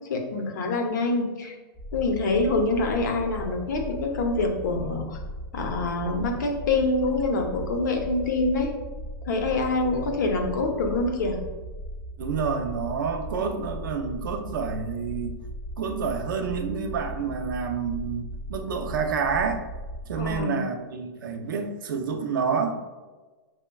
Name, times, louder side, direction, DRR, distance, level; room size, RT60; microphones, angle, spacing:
voice 1, 0.0-1.6 1.9-5.2 5.5-8.7 9.3-11.4 20.2-20.6, left 3 dB, 55° left, 3 dB, 0.7 m, -26 dB
sound 1, 1.7-20.4, equal, 10° right, 0.4 m, -37 dB
voice 2, 12.2-15.4 15.8-19.6 20.0-22.7, right 5 dB, 65° right, 5 dB, 0.5 m, -28 dB
6.0 x 2.1 x 2.2 m, 1.3 s
supercardioid pair, 175°, 12 cm